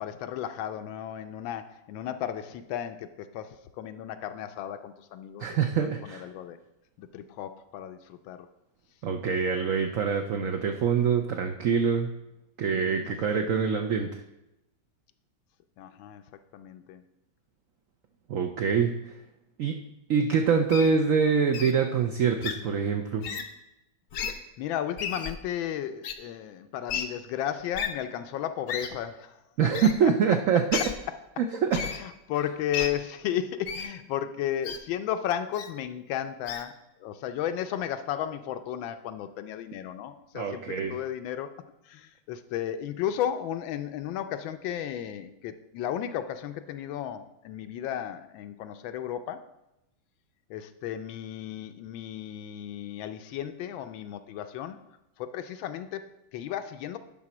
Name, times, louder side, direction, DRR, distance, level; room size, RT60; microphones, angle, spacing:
voice 1, 0.0-5.5 6.0-6.6 7.0-8.5 12.7-13.5 15.8-16.2 16.5-17.0 24.6-30.1 31.8-41.5 41.8-49.4 50.5-54.8 55.2-57.0, left 10 dB, 85° left, 9 dB, 1.4 m, -34 dB
voice 2, 5.4-6.3 9.0-12.1 12.6-14.2 18.3-18.9 19.6-19.7 20.1-23.3 29.6-30.8 31.4-31.8 40.3-40.9, right 6 dB, 80° right, 5 dB, 0.7 m, -25 dB
Wild animals, 20.7-20.9 21.5-21.7 22.4-22.5 23.2-23.4 24.1-24.3 25.0-25.3 26.0-26.1 26.9-27.0 27.7-27.9 28.7-28.9 29.7-29.9 30.7-30.9 31.7-32.0 32.7-32.9 33.7-33.9 34.6-34.8 35.5-35.7 36.5-36.6, left 7 dB, 65° left, 0.8 m, -32 dB
9.6 x 4.2 x 6.0 m, 0.90 s
omnidirectional pair, 2.1 m